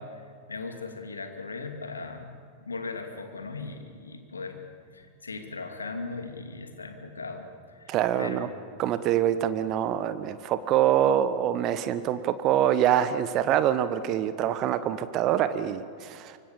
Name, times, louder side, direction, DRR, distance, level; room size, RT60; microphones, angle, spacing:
voice 1, 0.0-4.6 4.9-8.5, left 3 dB, 75° left, 5 dB, 2.7 m, -38 dB
voice 2, 7.9-8.5 8.8-16.4, right 10 dB, 35° right, 12 dB, 1.2 m, -25 dB
25.0 x 24.5 x 7.1 m, 2.3 s
figure-of-eight pair, 90°, 0 cm